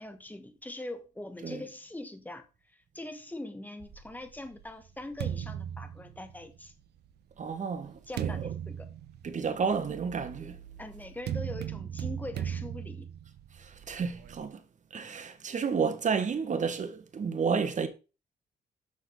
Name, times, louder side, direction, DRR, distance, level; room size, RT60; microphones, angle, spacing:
voice 1, 0.0-6.7 8.1-8.9 10.8-13.1, left 1 dB, 10° left, 1.3 m, -42 dB
sound 1, 3.9-6.7 7.4-14.5, right 9 dB, 80° right, 0.7 m, -38 dB
voice 2, 7.4-8.4 9.2-10.6 13.5-14.6 14.9-17.9, right 6 dB, 45° right, 1.3 m, -31 dB
6.4 x 6.1 x 3.8 m
cardioid pair, 80°, 17 cm